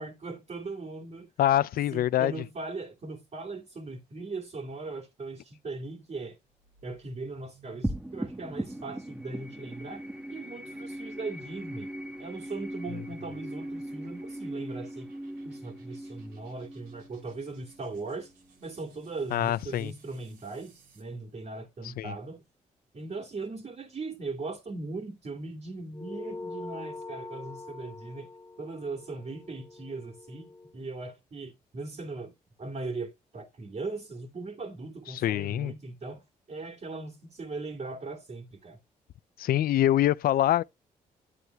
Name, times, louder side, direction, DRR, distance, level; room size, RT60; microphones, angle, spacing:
voice 1, 0.0-1.3 1.9-6.4 6.8-11.9 12.2-15.1 15.4-18.3 18.6-22.4 22.9-28.3 28.6-32.3 32.6-38.8, right 3 dB, 45° right, 2.5 m, -39 dB
voice 2, 1.4-2.3 19.3-19.9 22.0-22.1 35.1-35.7 39.4-40.6, left 12 dB, 65° left, 0.4 m, -25 dB
sound 1, 6.4-21.2, right 7 dB, 85° right, 3.2 m, -62 dB
sound 2, 7.8-18.5, right 1 dB, 5° right, 1.4 m, -39 dB
sound 3, 25.9-30.7, left 3 dB, 20° left, 0.7 m, -43 dB
11.0 x 7.9 x 2.3 m
supercardioid pair, 50°, 16 cm